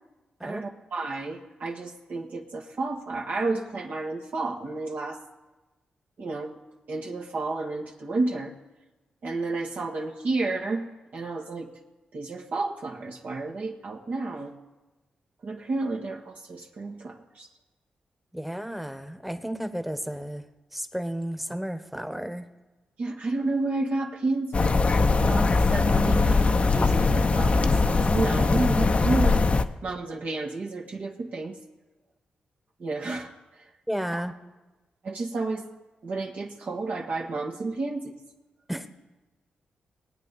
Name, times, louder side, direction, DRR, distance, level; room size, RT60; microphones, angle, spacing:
voice 1, 0.4-5.2 6.2-6.6 6.9-8.5 9.2-11.7 12.1-14.5 15.4-17.5 23.0-24.7 25.1-29.4 29.8-31.6 32.8-33.3 34.1-34.2 35.0-35.7 36.0-38.1, right 3 dB, 65° right, -1 dB, 1.4 m, -31 dB
voice 2, 18.3-20.5 20.7-22.5 33.9-34.3 38.7-38.9, equal, 5° right, 9 dB, 1.2 m, -32 dB
sound 1, 24.5-29.7, left 3 dB, 45° left, 0.7 m, -21 dB
20.0 x 8.8 x 4.1 m, 1.1 s
cardioid pair, 50°, 3 cm